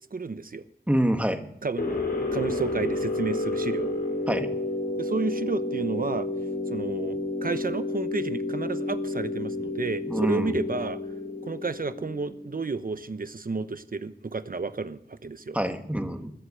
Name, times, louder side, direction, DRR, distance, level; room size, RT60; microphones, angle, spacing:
voice 1, 0.1-0.6 1.6-1.9 2.3-4.0 5.0-6.3 6.7-11.0 11.4-15.6, right 3 dB, 60° right, 12 dB, 1.0 m, -31 dB
voice 2, 0.9-1.4 4.3-4.5 10.1-10.6 15.5-16.3, equal, 10° right, 6 dB, 1.5 m, -26 dB
sound 1, 1.8-12.6, left 2 dB, 75° left, 4.5 m, -30 dB
20.5 x 8.1 x 6.7 m, 0.80 s
wide cardioid pair, 55°, 17 cm